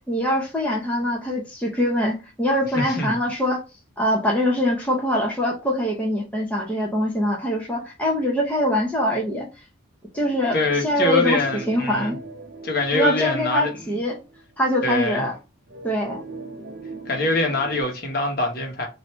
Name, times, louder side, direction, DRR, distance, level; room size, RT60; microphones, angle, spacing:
voice 1, 0.1-3.6 4.0-9.5 10.1-12.2 12.9-14.2 14.6-15.3 15.8-16.2, left 1 dB, 5° left, 0.7 m, -23 dB
voice 2, 2.7-3.1 10.5-12.1 12.6-13.7 14.8-15.3 17.1-18.9, left 2 dB, 45° left, 1.1 m, -24 dB
sound 1, 10.1-14.5 14.9-15.0 15.7-17.8, right 2 dB, 50° right, 1.2 m, -40 dB
3.2 x 2.7 x 4.4 m
head